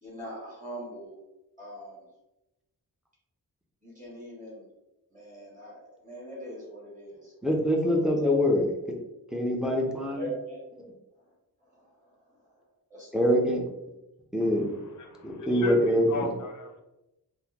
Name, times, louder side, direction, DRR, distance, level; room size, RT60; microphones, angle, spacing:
voice 1, 0.0-1.2 1.6-2.0 3.8-4.7 5.1-7.3 8.2-8.4 10.1-10.6 11.6-12.1 12.9-13.5, left 1 dB, 20° right, -6 dB, 1.2 m, -40 dB
voice 2, 7.4-8.6 9.3-10.2 13.1-13.6 14.3-14.6 15.2-16.2, equal, ahead, -1 dB, 0.4 m, -24 dB
voice 3, 14.4-16.8, left 2 dB, 55° left, 5 dB, 0.5 m, -35 dB
3.5 x 2.1 x 2.8 m, 0.94 s
wide cardioid pair, 165°, 37 cm